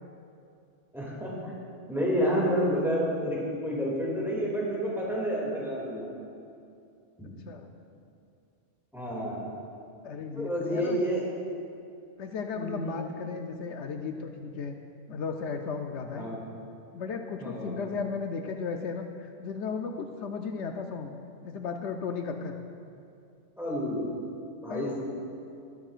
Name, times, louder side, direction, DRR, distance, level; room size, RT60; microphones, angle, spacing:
voice 1, 0.9-1.5 1.9-6.1 7.2-7.3 8.9-9.4 10.3-11.2 12.5-13.0 16.1-16.4 17.4-17.8 23.6-24.0 24.6-25.0, equal, ahead, -5 dB, 2.3 m, -29 dB
voice 2, 10.0-11.0 12.2-14.7 15.1-16.3 16.9-21.1 21.4-22.6 24.7-25.0, left 5 dB, 75° left, 5 dB, 0.9 m, -35 dB
20.0 x 8.3 x 2.5 m, 2.5 s
omnidirectional pair, 1.2 m